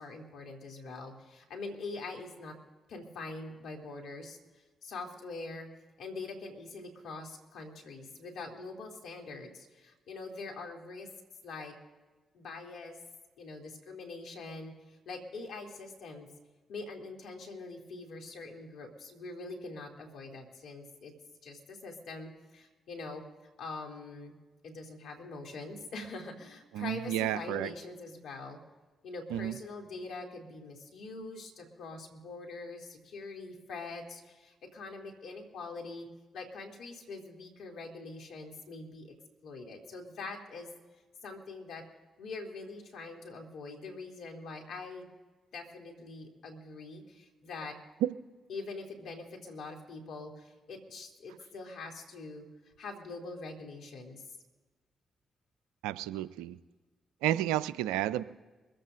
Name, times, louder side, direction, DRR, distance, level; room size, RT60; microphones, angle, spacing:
voice 1, 0.0-2.6 2.9-4.4 4.8-5.7 6.0-11.1 11.4-11.7 12.3-13.0 13.4-14.7 15.1-16.3 16.7-21.1 21.4-23.2 23.6-24.3 24.6-28.6 29.0-36.1 36.3-39.1 39.4-40.7 41.2-41.8 42.2-45.1 45.5-47.8 48.5-52.4 52.8-54.2, left 3 dB, 75° left, 1 dB, 2.6 m, -43 dB
voice 2, 26.7-27.7 29.3-29.5 55.8-56.6 57.2-58.2, right 13 dB, 85° right, 16 dB, 0.4 m, -31 dB
23.5 x 15.5 x 2.5 m, 1.2 s
hypercardioid pair, 45°, 0 cm